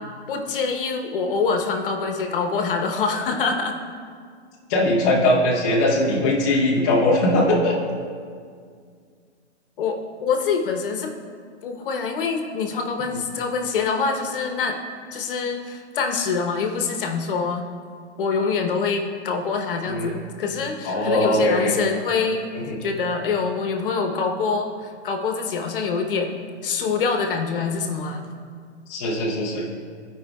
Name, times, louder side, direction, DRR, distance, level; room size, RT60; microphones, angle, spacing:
voice 1, 0.3-3.7 9.8-11.1 11.6-14.8 15.1-17.6 18.2-22.5 22.8-26.3 26.6-28.3, left 5 dB, 50° left, 3 dB, 0.9 m, -25 dB
voice 2, 4.7-7.8 19.9-20.1 20.8-21.7 22.7-22.8 28.9-29.6, left 1 dB, 15° left, -5 dB, 0.4 m, -20 dB
15.0 x 5.1 x 2.3 m, 2.1 s
hypercardioid pair, 160°, 34 cm